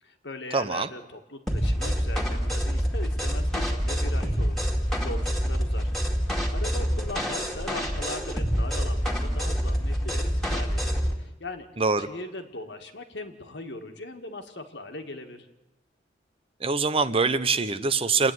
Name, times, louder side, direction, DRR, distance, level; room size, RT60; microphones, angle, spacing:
voice 1, 0.0-4.6 5.0-5.9 6.5-11.7 12.0-15.5, left 2 dB, 70° left, 6 dB, 1.9 m, -39 dB
voice 2, 0.5-0.9 11.8-12.1 16.6-18.3, right 4 dB, 30° right, 12 dB, 0.8 m, -24 dB
sound 1, 1.5-11.2, equal, ahead, 2.3 m, -26 dB
27.5 x 9.8 x 9.5 m, 0.96 s
head